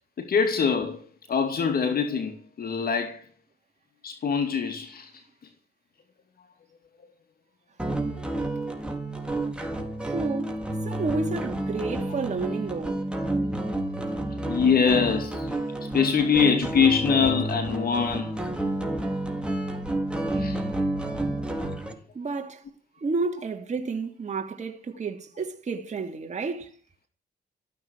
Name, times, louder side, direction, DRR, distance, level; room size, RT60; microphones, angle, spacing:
voice 1, 0.2-3.2 4.0-5.2 14.4-15.5 15.8-18.4 20.3-20.6, left 6 dB, 60° left, 2.5 m, -24 dB
sound 1, 7.8-21.9, right 1 dB, 5° right, 4.8 m, -30 dB
voice 2, 10.0-10.5 10.8-13.0 22.1-22.6 23.0-26.7, right 4 dB, 45° right, 2.9 m, -31 dB
14.5 x 12.5 x 6.5 m
cardioid pair, 70°, 17 cm